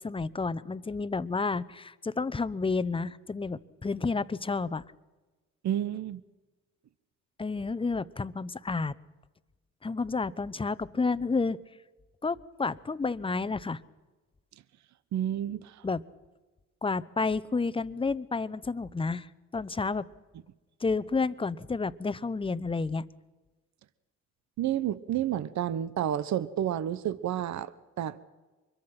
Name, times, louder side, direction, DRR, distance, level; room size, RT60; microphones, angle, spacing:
voice 1, 0.0-4.8 7.4-8.9 9.8-11.6 12.2-13.8 15.8-16.0 16.8-19.3 19.5-20.1 20.8-23.0, left 4 dB, 20° left, 16 dB, 0.8 m, -30 dB
voice 2, 5.6-6.2 15.1-15.8 24.6-27.7 28.0-28.2, right 11 dB, 65° right, 16 dB, 0.9 m, -30 dB
24.5 x 22.0 x 5.9 m, 1.2 s
cardioid pair, 90°, 30 cm